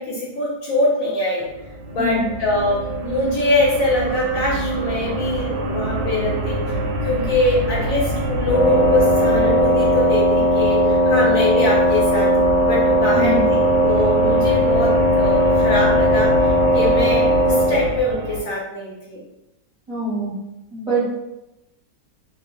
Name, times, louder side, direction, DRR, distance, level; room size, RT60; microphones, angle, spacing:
voice 1, 0.0-1.5 1.9-6.7 7.0-19.2, left 1 dB, 65° left, -4 dB, 1.0 m, -23 dB
sound 1, 1.4-18.4, right 1 dB, 85° right, 1.2 m, -26 dB
Wind instrument woodwind instrument, 8.4-17.8, equal, 85° left, 0.3 m, -17 dB
voice 2, 13.1-13.4 19.9-20.3 20.7-21.1, right 1 dB, 30° right, -9 dB, 0.6 m, -23 dB
2.9 x 2.0 x 3.1 m, 0.91 s
omnidirectional pair, 1.8 m